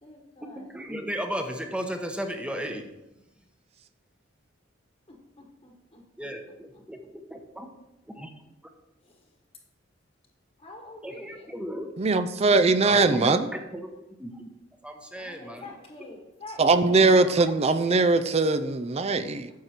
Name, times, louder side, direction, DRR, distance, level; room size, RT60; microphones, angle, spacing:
voice 1, 0.0-0.7 5.1-6.0 9.0-9.1 10.6-11.5 15.1-17.3, left 2 dB, 30° left, 1.3 m, -46 dB
voice 2, 0.6-2.8 6.2-6.4 6.9-7.7 8.2-8.3 11.0-11.9 12.8-13.4 13.7-14.4 14.8-15.7 17.2-17.3, equal, 5° right, 0.9 m, -34 dB
voice 3, 12.0-13.5 16.6-19.5, right 3 dB, 30° right, 0.5 m, -21 dB
9.3 x 6.6 x 4.4 m
head